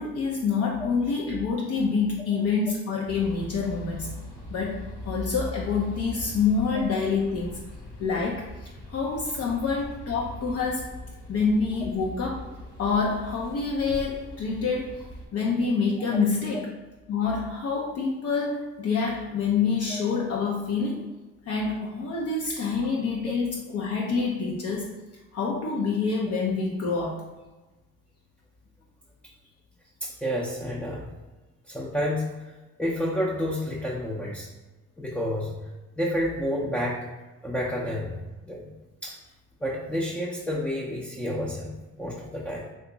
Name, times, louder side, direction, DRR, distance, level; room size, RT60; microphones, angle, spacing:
voice 1, 0.0-4.1 4.5-4.8 5.1-7.5 8.0-10.8 11.3-12.3 12.8-14.9 15.3-16.7 17.1-21.0 21.5-24.9 25.3-27.2, left 5 dB, 55° left, -3 dB, 0.6 m, -27 dB
sound 1, 3.1-15.3, left 1 dB, 85° left, 1.2 m, -41 dB
voice 2, 30.0-31.1 31.7-32.3 32.8-34.5 35.0-35.5 36.0-37.0 37.4-38.2 38.4-38.7 39.0-39.2 39.6-42.7, equal, 5° left, -5 dB, 0.5 m, -29 dB
2.9 x 2.4 x 3.7 m, 1.2 s
cardioid pair, 90°, 30 cm